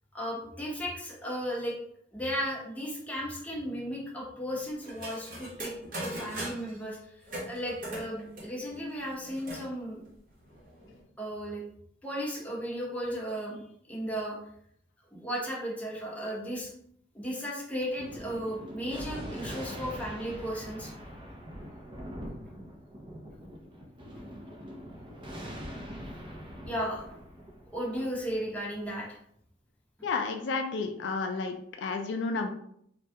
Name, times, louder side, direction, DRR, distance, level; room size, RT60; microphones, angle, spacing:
voice 1, 0.1-1.7 2.1-5.7 6.0-7.0 7.5-10.0 11.2-11.6 12.0-14.4 15.1-16.7 17.1-20.9 26.7-27.2 27.7-29.2, equal, 10° left, -4 dB, 0.8 m, -35 dB
sound 1, 4.8-6.8 7.3-9.7 10.1-10.2 10.4-11.0, right 1 dB, 50° right, 0.9 m, -40 dB
Thunder, 17.9-28.8, equal, 25° right, 0.5 m, -43 dB
voice 2, 30.0-32.5, left 4 dB, 70° left, 5 dB, 0.3 m, -31 dB
3.2 x 2.3 x 2.7 m, 0.69 s
head